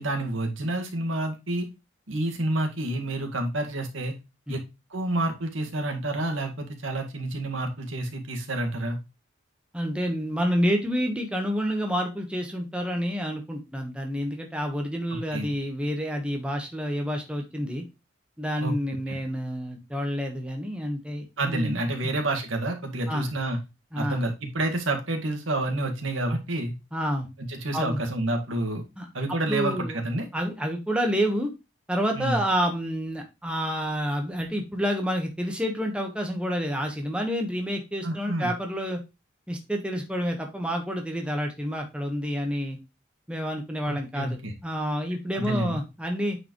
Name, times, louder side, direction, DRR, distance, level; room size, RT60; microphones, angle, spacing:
voice 1, 0.0-1.7 2.1-4.1 4.5-4.6 4.9-9.0 15.3-15.5 18.6-18.7 19.1-19.2 21.4-23.6 23.9-26.7 27.4-28.8 29.1-30.3 32.1-32.4 38.0-38.5 43.9-44.5 45.3-45.8, right 1 dB, 85° right, 4 dB, 1.9 m, -29 dB
voice 2, 9.7-17.8 18.4-21.7 22.0-22.2 23.1-23.3 23.9-24.2 26.9-27.3 27.7-28.0 29.0-30.0 30.3-31.5 31.9-39.0 39.5-42.8 43.3-46.4, equal, 5° right, 2 dB, 1.2 m, -29 dB
8.8 x 4.9 x 3.1 m, 0.25 s
head